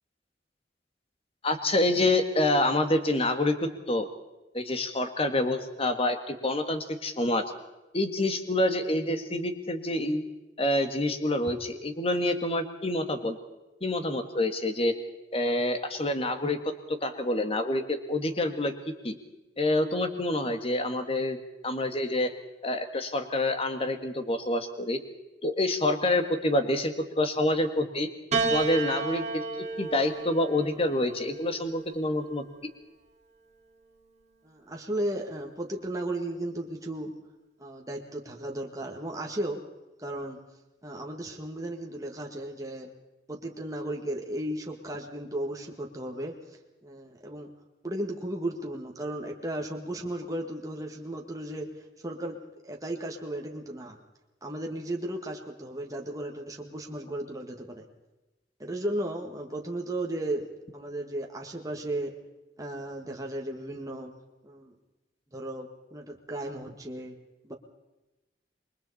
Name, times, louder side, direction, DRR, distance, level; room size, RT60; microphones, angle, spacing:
voice 1, 1.4-4.1 4.5-7.4 7.9-10.2 10.6-13.4 13.8-14.9 15.3-19.2 19.6-22.3 22.6-25.0 25.4-28.1 28.5-29.4 29.8-32.4, left 1 dB, 35° left, 7 dB, 1.8 m, -27 dB
Piano, 28.3-32.8 33.8-34.6, right 4 dB, 40° right, 2.7 m, -33 dB
voice 2, 34.4-37.1 37.6-39.6 40.0-40.4 40.8-42.9 43.3-46.4 46.8-47.5 47.8-51.7 52.0-52.4 52.6-54.0 54.4-57.9 58.6-60.5 60.7-62.1 62.6-64.1 64.4-64.7 65.3-67.1 67.4-67.5, right 1 dB, 20° right, 1 dB, 1.9 m, -35 dB
28.0 x 22.0 x 4.3 m, 1.0 s
head